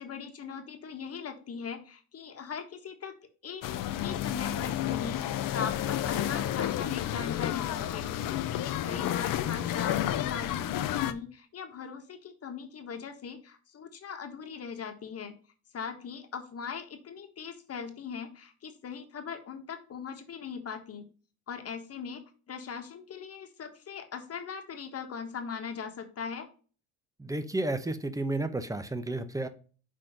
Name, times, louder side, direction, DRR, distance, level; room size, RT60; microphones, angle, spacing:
voice 1, 0.0-3.2 3.4-3.6 3.9-15.3 15.7-21.1 21.5-26.5, left 6 dB, 40° left, 5 dB, 1.5 m, -40 dB
sound 1, 3.6-11.1, left 12 dB, 60° left, 0.9 m, -31 dB
voice 2, 27.2-29.5, right 2 dB, 10° right, 11 dB, 0.9 m, -32 dB
6.2 x 4.4 x 6.5 m, 0.38 s
supercardioid pair, 105°, 38 cm